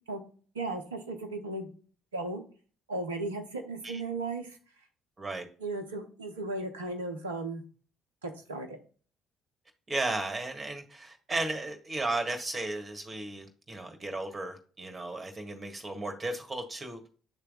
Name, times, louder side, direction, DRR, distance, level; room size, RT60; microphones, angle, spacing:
voice 1, 0.5-1.7 2.1-2.4 2.9-4.6 5.6-7.6 8.2-8.8, right 2 dB, 85° right, 7 dB, 0.8 m, -36 dB
voice 2, 9.9-17.1, right 2 dB, 30° right, 5 dB, 1.6 m, -35 dB
8.8 x 3.3 x 3.8 m, 0.39 s
figure-of-eight pair, 50°, 0 cm